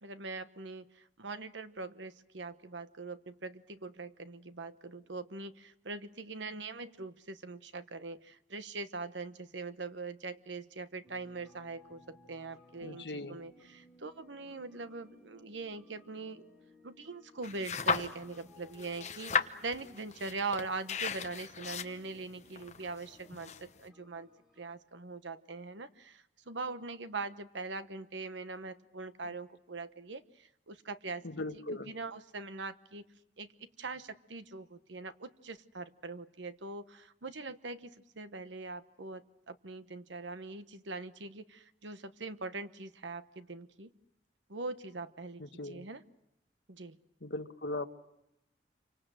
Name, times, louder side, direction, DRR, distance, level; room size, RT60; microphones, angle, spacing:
voice 1, 0.0-16.4 16.8-24.3 24.6-31.3 31.5-33.0 33.4-43.9 44.5-46.0 46.7-47.0, right 3 dB, 85° right, 11 dB, 1.1 m, -42 dB
sound 1, 11.0-24.8, left 1 dB, 5° right, 2.9 m, -61 dB
voice 2, 12.8-13.4 31.2-31.9 45.4-45.8 47.2-47.9, left 2 dB, 70° left, 7 dB, 1.4 m, -39 dB
sound 2, 17.4-18.4 18.7-23.9, left 6 dB, 40° left, 1.0 m, -35 dB
27.5 x 25.0 x 7.7 m, 0.84 s
head